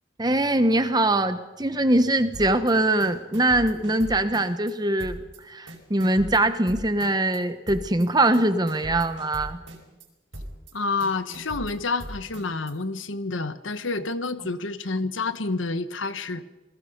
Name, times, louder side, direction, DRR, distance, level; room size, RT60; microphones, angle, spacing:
voice 1, 0.2-9.6, right 1 dB, 20° right, 10 dB, 1.2 m, -22 dB
sound 1, 2.3-2.7 3.0-4.7 5.0-5.4 5.7-7.4 7.7-8.1 8.3-10.1 10.3-10.7 11.0-12.7, equal, 80° right, 5.1 m, -39 dB
voice 2, 10.7-16.4, left 3 dB, 80° left, 11 dB, 1.2 m, -29 dB
28.5 x 21.0 x 5.4 m, 1.1 s
head